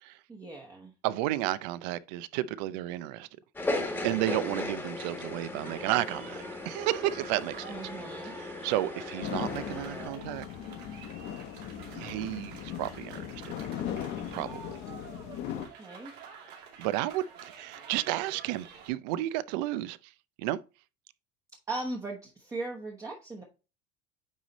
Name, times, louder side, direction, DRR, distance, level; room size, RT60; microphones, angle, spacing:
voice 1, 0.3-0.9 7.7-8.3 15.5-16.1 21.7-23.4, right 2 dB, 15° right, 1.0 m, -38 dB
voice 2, 1.0-3.3 4.0-7.7 8.3-10.4 11.9-13.5 14.3-14.6 16.8-20.0 20.4-20.6, right 15 dB, 85° right, 0.6 m, -32 dB
sound 1, 3.6-10.1, left 2 dB, 10° left, 1.2 m, -37 dB
sound 2, 5.6-18.9, right 6 dB, 60° right, 2.6 m, -49 dB
sound 3, 9.2-15.7, left 9 dB, 50° left, 1.0 m, -38 dB
9.3 x 3.2 x 4.0 m
cardioid pair, 155°, 21 cm